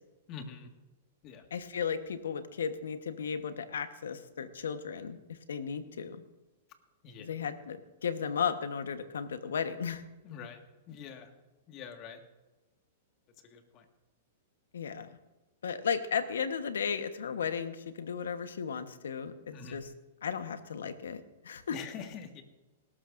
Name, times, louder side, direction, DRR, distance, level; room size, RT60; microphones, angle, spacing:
voice 1, 0.3-0.7 1.2-1.5 7.0-7.3 10.2-10.6 10.9-11.3 11.7-12.2 13.4-13.9 19.5-19.8 21.7-22.4, left 6 dB, 40° left, 6 dB, 1.7 m, -44 dB
voice 2, 1.5-6.2 7.2-10.0 14.7-15.1 15.6-19.9 20.2-21.8, left 7 dB, 85° left, 10 dB, 1.1 m, -35 dB
19.5 x 12.5 x 2.6 m, 1.1 s
hypercardioid pair, 130°, 0 cm